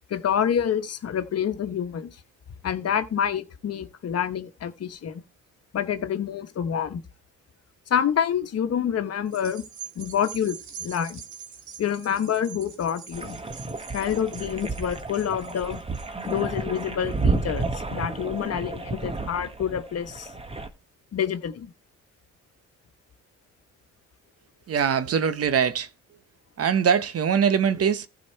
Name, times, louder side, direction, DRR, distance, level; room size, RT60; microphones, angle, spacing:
voice 1, 0.1-2.1 2.6-5.2 5.7-7.0 7.9-9.6 10.0-11.2 11.8-13.4 13.9-15.8 16.3-20.3 21.1-21.7, left 8 dB, 55° left, 1.2 m, -27 dB
sound 1, 9.3-17.9 18.4-18.5, right 8 dB, 70° right, 2.3 m, -44 dB
sound 2, 13.1-20.7, right 3 dB, 20° right, 1.3 m, -31 dB
voice 2, 24.7-25.9 26.6-28.1, right 7 dB, 50° right, 1.0 m, -22 dB
14.5 x 5.0 x 4.5 m
cardioid pair, 90°, 30 cm